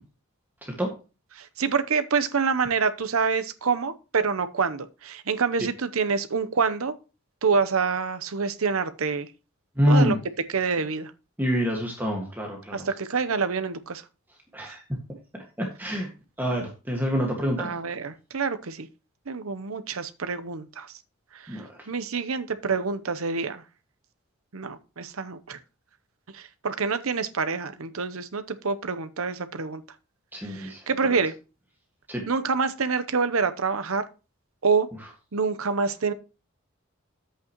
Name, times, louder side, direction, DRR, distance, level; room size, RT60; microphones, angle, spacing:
voice 1, 1.3-7.0 7.4-9.3 9.9-10.2 10.5-11.1 12.7-14.0 14.6-14.8 17.6-18.9 19.3-20.9 21.3-23.6 24.5-25.6 26.3-29.8 30.4-31.3 32.3-34.1 34.6-34.9 35.3-36.1, right 5 dB, 80° right, 0.8 m, -27 dB
voice 2, 9.8-10.2 11.4-12.9 14.5-14.8 15.6-16.1 16.4-17.7 21.5-21.7 30.3-30.8 32.1-32.2, equal, 10° right, 1.7 m, -25 dB
10.5 x 8.2 x 3.0 m
head